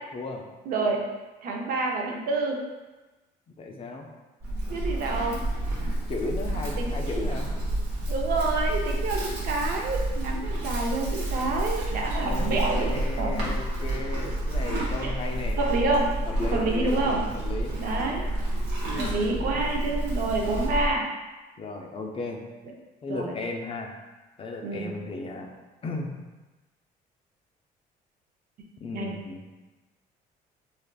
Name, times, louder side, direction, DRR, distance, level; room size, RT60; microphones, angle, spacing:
voice 1, 0.1-0.4 3.5-4.1 6.1-7.5 12.1-15.6 16.2-17.0 17.3-17.8 18.8-19.3 21.6-22.4 23.0-23.9 24.4-25.5 25.8-26.1 28.8-29.4, left 2 dB, 35° left, 1 dB, 0.4 m, -35 dB
voice 2, 0.7-1.0 1.4-2.6 4.7-5.4 6.8-6.9 8.1-13.4 15.0-15.2 15.6-16.2 16.5-17.3 17.8-18.3 19.0-21.0 23.1-23.4 24.6-24.9 28.9-29.2, right 3 dB, 60° right, 1 dB, 0.5 m, -28 dB
Livestock farm animals working animals, 4.4-20.9, right 1 dB, 85° right, 0.9 m, -29 dB
3.4 x 2.4 x 2.2 m, 1.2 s
cardioid pair, 110°, 17 cm